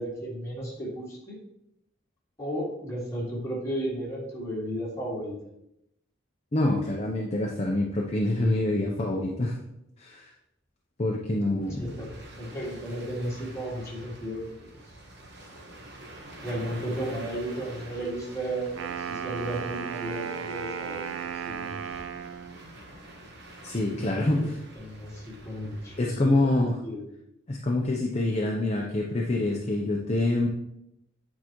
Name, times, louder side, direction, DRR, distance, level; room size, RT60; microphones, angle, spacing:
voice 1, 0.0-1.3 2.4-5.3 11.8-12.1 12.4-14.5 16.3-21.8 23.9-24.4 24.8-27.0, right 1 dB, 15° left, -7 dB, 2.1 m, -34 dB
voice 2, 6.5-9.5 10.0-10.3 11.0-11.9 23.6-24.6 26.0-26.8 27.5-30.5, left 2 dB, 30° left, 0 dB, 0.6 m, -26 dB
sound 1, 11.6-26.0, right 1 dB, 55° right, 1.2 m, -46 dB
Wind instrument woodwind instrument, 18.7-22.6, right 7 dB, 70° right, 0.5 m, -35 dB
8.5 x 4.8 x 3.0 m, 0.81 s
head